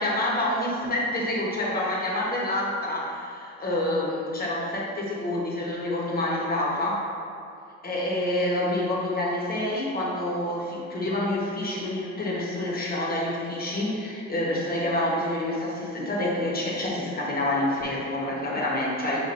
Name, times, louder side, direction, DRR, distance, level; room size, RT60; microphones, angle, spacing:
voice 1, 0.0-7.1 7.8-19.2, left 1 dB, 30° left, -4 dB, 1.0 m, -27 dB
6.6 x 2.5 x 2.6 m, 2.5 s
cardioid pair, 90°, 30 cm